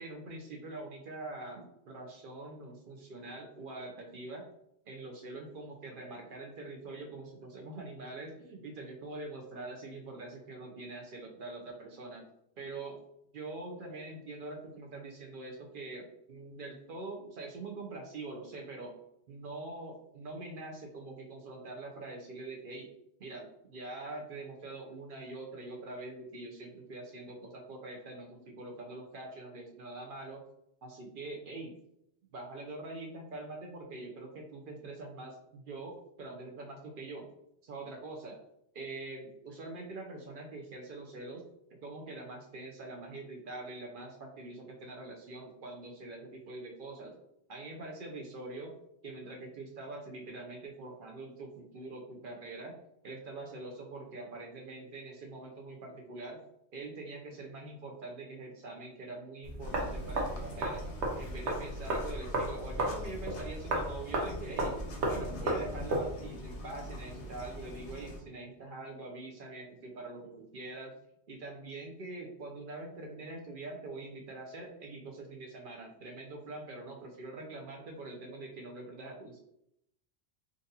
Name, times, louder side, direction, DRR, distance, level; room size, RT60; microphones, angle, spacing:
voice 1, 0.0-4.5 4.9-12.3 12.6-13.0 13.3-18.9 19.3-22.9 23.2-30.4 30.8-31.8 32.3-37.3 37.6-38.4 38.7-41.5 41.8-47.2 47.5-48.8 49.0-52.7 53.0-56.4 56.7-60.8 61.1-64.7 65.0-70.9 71.3-79.4, right 2 dB, 60° right, 1 dB, 0.7 m, -44 dB
sound 1, 59.4-66.0, right 1 dB, 75° right, 1.0 m, -34 dB
sound 2, 59.6-68.2, left 1 dB, 80° left, 1.0 m, -43 dB
3.8 x 2.5 x 2.6 m, 0.77 s
omnidirectional pair, 1.2 m